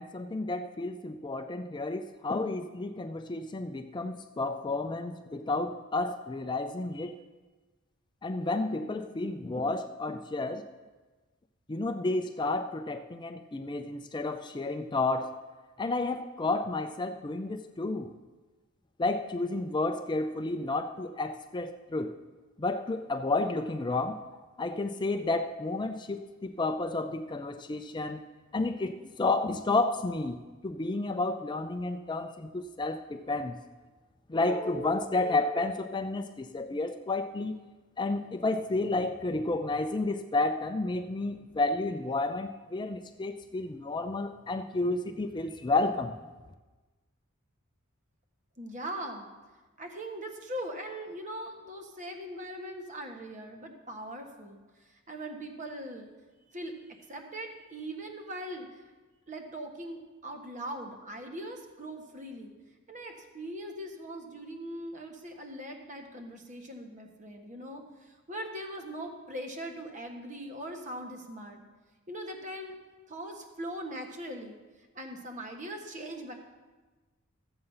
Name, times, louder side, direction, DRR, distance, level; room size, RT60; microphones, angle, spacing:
voice 1, 0.0-7.2 8.2-10.6 11.7-15.3 15.8-18.1 19.0-22.1 22.6-24.2 24.6-28.2 28.5-30.4 30.6-33.5 34.3-37.6 38.0-46.2, left 2 dB, 20° left, 7 dB, 0.4 m, -31 dB
voice 2, 48.6-49.3 49.8-56.1 56.5-58.8 59.3-62.5 62.9-71.6 72.1-72.8 73.1-74.6 74.9-76.3, right 1 dB, 35° right, 4 dB, 1.4 m, -41 dB
14.0 x 7.8 x 5.6 m, 1.3 s
head